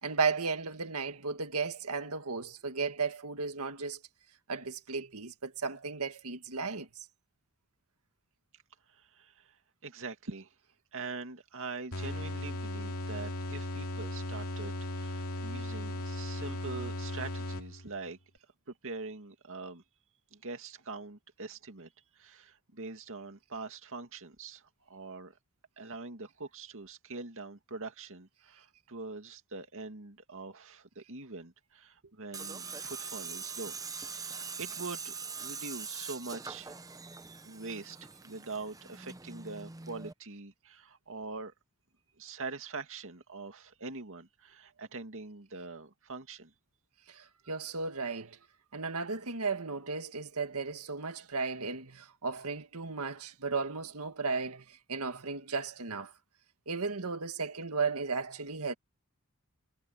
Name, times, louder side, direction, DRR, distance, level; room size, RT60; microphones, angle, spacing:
voice 1, 0.0-4.0 4.5-6.9 47.1-48.4 48.7-56.1 56.7-58.7, right 4 dB, 80° right, 1.9 m, -35 dB
voice 2, 8.9-9.6 9.8-10.5 10.9-18.2 18.8-19.8 20.3-25.4 25.8-33.8 34.1-36.7 37.4-41.5 42.2-46.5, right 3 dB, 65° right, 2.4 m, -43 dB
sound 1, 11.9-18.0, left 1 dB, 75° left, 2.6 m, -37 dB
Tools, 32.3-40.1, right 5 dB, 15° right, 0.7 m, -42 dB
head